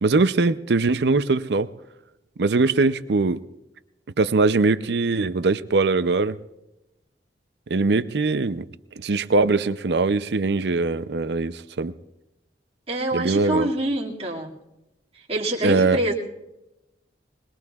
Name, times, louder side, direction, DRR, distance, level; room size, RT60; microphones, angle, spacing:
voice 1, 0.0-1.7 2.4-3.4 4.2-6.4 7.7-8.6 9.0-11.9 13.1-13.7 15.6-16.0, right 3 dB, 70° right, 0.6 m, -21 dB
voice 2, 12.9-14.5 15.1-16.1, right 1 dB, 35° right, 2.3 m, -26 dB
22.5 x 21.0 x 2.4 m
head